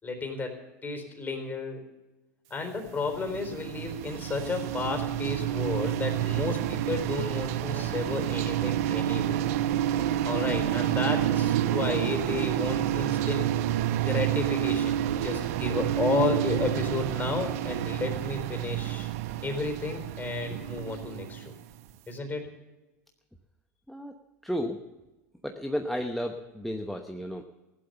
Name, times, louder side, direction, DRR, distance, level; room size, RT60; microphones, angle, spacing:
voice 1, 0.0-1.8 2.5-9.4 9.9-13.5 13.9-19.1 19.4-21.5 22.1-22.5, left 3 dB, 20° left, 4 dB, 4.2 m, -32 dB
sound 1, 2.8-21.8, right 12 dB, 65° right, 0.7 m, -29 dB
voice 2, 24.4-24.8 25.4-27.4, equal, ahead, 5 dB, 1.0 m, -32 dB
16.0 x 11.5 x 6.9 m, 1.1 s
hypercardioid pair, 90°, 9 cm